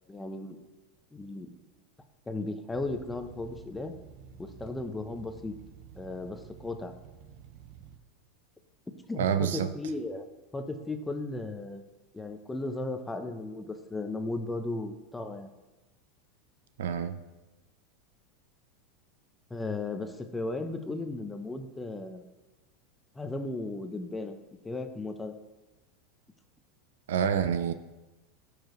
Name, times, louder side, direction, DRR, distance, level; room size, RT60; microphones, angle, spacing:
voice 1, 0.1-0.6 1.1-1.5 2.3-3.9 4.4-5.5 6.0-6.9 9.1-9.3 9.5-10.3 10.5-11.8 12.1-15.5 19.5-22.2 23.2-24.4 24.6-25.3, left 2 dB, 10° left, 7 dB, 0.8 m, -35 dB
sound 1, 2.7-8.0, right 7 dB, 60° right, 0.9 m, -51 dB
voice 2, 9.2-9.7 16.8-17.2 27.1-27.7, right 8 dB, 90° right, 11 dB, 0.6 m, -27 dB
14.0 x 4.9 x 3.2 m, 1.1 s
supercardioid pair, 125°, 0 cm